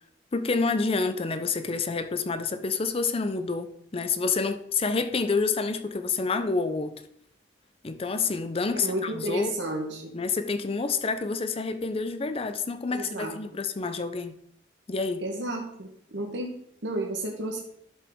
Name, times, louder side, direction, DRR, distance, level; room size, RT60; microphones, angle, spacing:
voice 1, 0.3-7.0 7.8-9.5 10.1-14.4 14.9-15.2, left 4 dB, 30° left, 0.5 m, -28 dB
voice 2, 8.7-10.1 12.9-13.4 15.2-16.5 16.8-17.6, right 1 dB, 75° right, 1.3 m, -32 dB
11.0 x 5.6 x 3.6 m
head